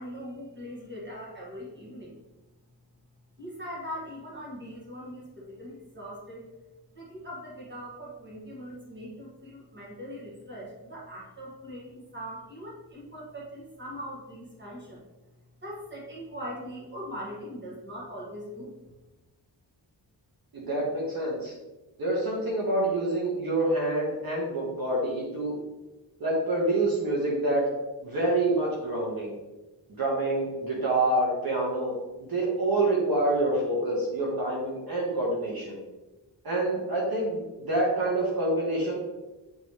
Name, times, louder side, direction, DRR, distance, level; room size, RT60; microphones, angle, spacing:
voice 1, 0.0-2.2 3.4-6.4 7.0-15.0 15.6-18.8, equal, 25° right, -5 dB, 1.7 m, -41 dB
voice 2, 20.5-21.5 22.0-25.6 26.2-27.7 28.0-29.3 30.0-35.8 36.4-38.9, right 2 dB, 55° right, -4 dB, 1.4 m, -27 dB
7.7 x 3.9 x 3.2 m, 1.1 s
wide cardioid pair, 165°, 42 cm